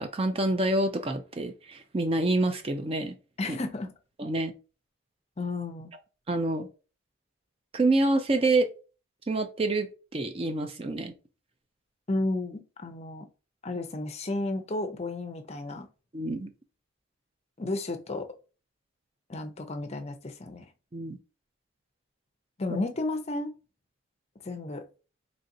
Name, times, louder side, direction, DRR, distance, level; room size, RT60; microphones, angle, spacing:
voice 1, 0.0-3.1 3.5-3.6 4.2-4.5 6.3-6.7 7.7-8.7 9.3-11.1 16.1-16.5 20.9-21.2 22.7-22.8, right 2 dB, 30° right, 0.4 m, -27 dB
voice 2, 3.4-3.9 5.4-5.9 12.1-13.3 13.6-15.9 17.6-18.3 19.3-20.7 22.6-23.5 24.4-24.8, left 2 dB, 30° left, 0.5 m, -32 dB
4.1 x 3.1 x 2.6 m
head